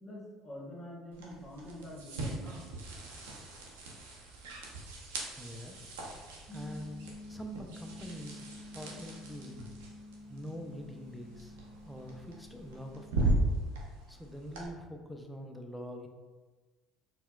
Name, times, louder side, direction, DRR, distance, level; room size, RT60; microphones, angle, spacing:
voice 1, 0.0-2.7, equal, 25° left, -5 dB, 1.4 m, -46 dB
sound 1, 1.1-14.7, right 1 dB, 80° right, 0.7 m, -38 dB
voice 2, 5.4-5.9 6.5-8.5 8.7-9.7 10.0-11.6 11.9-13.5 14.1-16.1, equal, 5° left, 3 dB, 0.5 m, -45 dB
sound 2, 6.5-12.9, left 2 dB, 40° right, 0.9 m, -49 dB
4.2 x 2.2 x 2.3 m, 1.3 s
hypercardioid pair, 65°, 0 cm